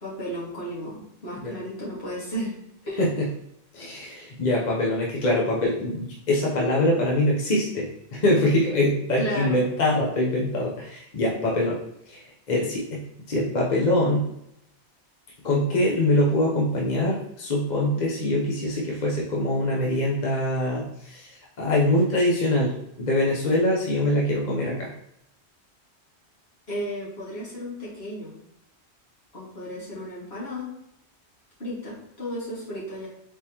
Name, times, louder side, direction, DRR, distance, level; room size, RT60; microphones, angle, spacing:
voice 1, 0.0-2.6 2.9-3.1 9.2-9.6 26.7-28.3 29.3-30.7 31.6-33.1, equal, 65° left, -8 dB, 2.2 m, -33 dB
voice 2, 3.7-11.8 12.1-12.2 12.5-13.0 13.3-14.2 15.4-21.3 21.6-22.7 23.0-24.9, left 1 dB, 45° left, -4 dB, 0.8 m, -23 dB
4.6 x 3.6 x 2.9 m, 0.78 s
omnidirectional pair, 1.1 m